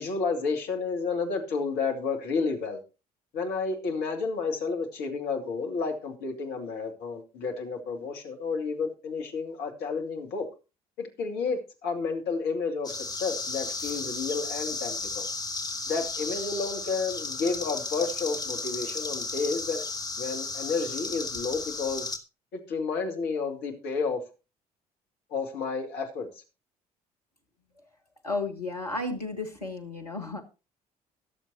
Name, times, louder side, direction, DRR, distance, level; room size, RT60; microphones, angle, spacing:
voice 1, 0.0-2.8 3.3-10.5 11.0-15.3 15.9-19.9 20.2-22.1 22.5-24.2 25.3-26.4, left 4 dB, 60° left, 3 dB, 2.5 m, -31 dB
sound 1, 12.8-22.2, left 3 dB, 20° left, 1.9 m, -34 dB
voice 2, 28.2-30.4, left 2 dB, 85° left, 2 dB, 1.4 m, -33 dB
22.0 x 7.4 x 2.9 m, 0.30 s
figure-of-eight pair, 50°, 19 cm